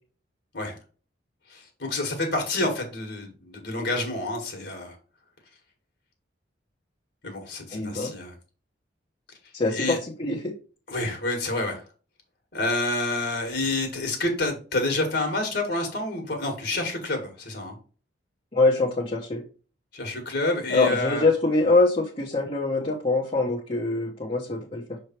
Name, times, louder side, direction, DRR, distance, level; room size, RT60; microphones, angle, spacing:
voice 1, 1.5-4.9 7.2-8.3 9.7-10.0 10.9-11.8 12.5-17.7 19.9-21.3, left 2 dB, 55° left, 2 dB, 1.7 m, -28 dB
voice 2, 7.7-8.1 9.5-10.5 18.5-19.4 20.7-25.0, left 3 dB, 30° left, -4 dB, 1.1 m, -24 dB
6.4 x 3.3 x 4.5 m, 0.37 s
head